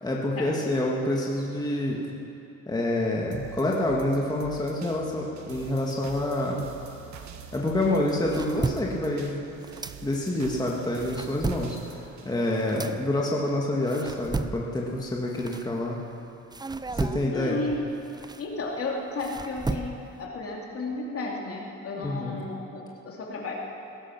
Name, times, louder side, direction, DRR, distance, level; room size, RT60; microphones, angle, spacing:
voice 1, 0.0-2.0 2.7-6.7 7.5-9.4 10.0-16.0 16.9-17.6 22.0-22.4, left 1 dB, 15° left, -3 dB, 1.8 m, -27 dB
sound 1, 3.3-13.4 13.8-13.9, right 7 dB, 65° right, 1.3 m, -45 dB
sound 2, 7.9-10.5 10.8-16.1 16.5-20.2, right 3 dB, 15° right, 0.5 m, -35 dB
voice 2, 17.3-17.8 18.4-23.5, left 3 dB, 50° left, -1 dB, 2.9 m, -33 dB
19.5 x 11.5 x 6.1 m, 2.8 s
cardioid pair, 90°, 30 cm